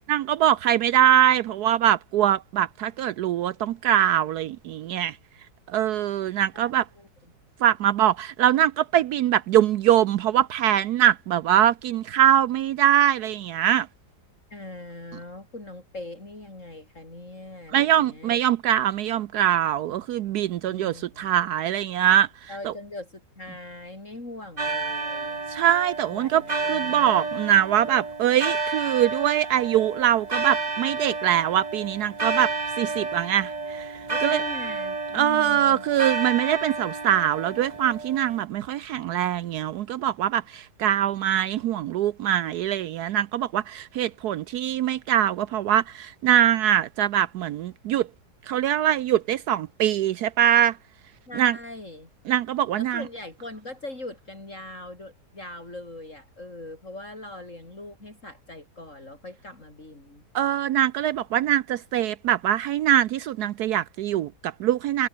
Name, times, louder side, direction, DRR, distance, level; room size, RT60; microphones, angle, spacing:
voice 1, 0.1-5.2 5.7-6.9 7.6-13.9 17.7-22.3 22.6-22.7 25.5-26.4 26.7-32.5 32.8-34.4 35.1-48.1 48.5-50.8 51.4-51.6 52.3-53.0 60.3-65.1, right 11 dB, 75° right, 1.1 m, -23 dB
voice 2, 14.5-18.4 20.7-21.3 22.5-25.4 26.1-27.3 34.1-35.8 51.3-52.1 52.8-60.2, left 2 dB, 45° left, 6.3 m, -41 dB
sound 1, 24.6-38.5, right 3 dB, 25° right, 1.6 m, -31 dB
omnidirectional pair, 1.8 m